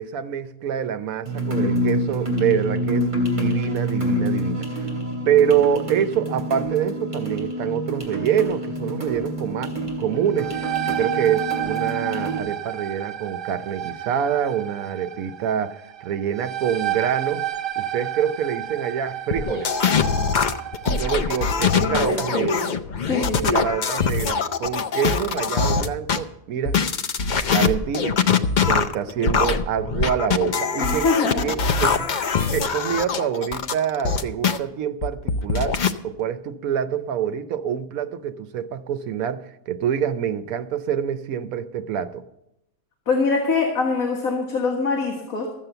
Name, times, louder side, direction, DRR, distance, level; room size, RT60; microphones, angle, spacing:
voice 1, 0.0-3.1 3.3-4.7 5.3-17.5 17.8-19.7 20.9-22.5 23.5-26.8 27.5-28.2 28.7-31.1 31.4-42.2, right 9 dB, 75° right, 1.1 m, -26 dB
sound 1, 1.2-12.4, equal, 30° right, 2.5 m, -27 dB
sound 2, 10.1-21.6, right 12 dB, 55° right, 0.6 m, -31 dB
sound 3, 19.3-26.2 26.7-34.6 35.0-35.9, left 5 dB, 90° left, 0.4 m, -22 dB
voice 2, 21.8-22.7 23.1-23.6 25.1-25.3 30.8-31.5 43.1-45.5, left 3 dB, 70° left, 2.0 m, -23 dB
14.0 x 7.5 x 6.7 m
omnidirectional pair, 1.5 m